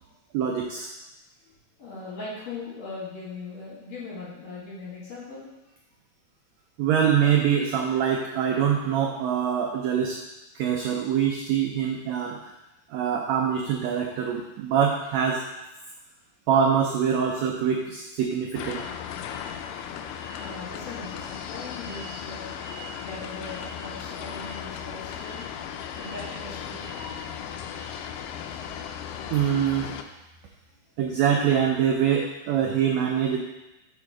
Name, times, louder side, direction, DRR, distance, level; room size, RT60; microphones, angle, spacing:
voice 1, 0.3-0.9 6.8-10.2 10.6-12.4 12.9-15.4 16.5-18.8 29.3-29.9 31.0-33.4, right 8 dB, 85° right, 1 dB, 1.5 m, -24 dB
voice 2, 1.8-5.5 20.4-22.5 23.0-25.5 25.9-26.9, left 3 dB, 55° left, -7 dB, 3.2 m, -39 dB
sound 1, 18.5-30.0, left 8 dB, 85° left, 2.1 m, -36 dB
5.1 x 4.8 x 6.0 m, 0.97 s
omnidirectional pair, 3.8 m